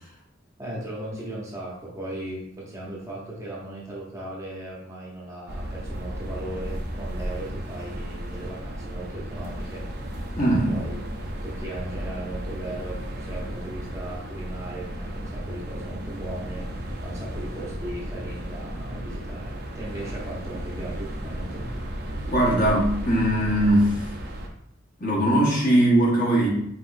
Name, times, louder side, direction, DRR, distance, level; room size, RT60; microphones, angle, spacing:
voice 1, 0.6-9.9 10.7-11.0 11.4-21.7, right 1 dB, 15° right, -5 dB, 0.8 m, -37 dB
sound 1, 5.5-24.5, right 1 dB, 50° right, 0.7 m, -34 dB
voice 2, 10.4-10.8 22.3-24.1 25.0-26.5, right 1 dB, 40° left, -4 dB, 1.3 m, -20 dB
5.7 x 3.1 x 2.6 m, 0.72 s
head